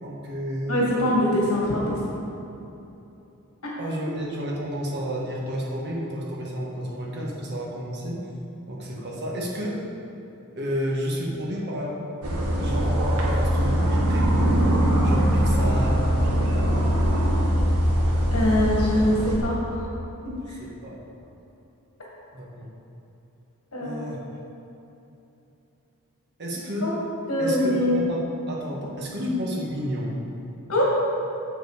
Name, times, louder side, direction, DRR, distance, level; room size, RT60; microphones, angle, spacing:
voice 1, 0.0-1.1 3.8-8.2 8.7-9.8 10.6-12.0 12.6-14.6 15.0-16.1 20.6-21.0 22.3-22.7 23.8-24.2 26.4-27.0 27.4-28.2 28.5-30.1, equal, 50° right, -3 dB, 1.6 m, -31 dB
voice 2, 0.7-2.2 18.3-19.9 20.2-20.4 23.7-24.1 26.8-26.9 27.3-28.0 29.2-29.4 30.7-30.8, left 1 dB, 75° left, -4 dB, 1.8 m, -23 dB
sound 1, 12.2-19.4, equal, 80° right, 1.5 m, -22 dB
7.9 x 7.2 x 4.9 m, 2.9 s
head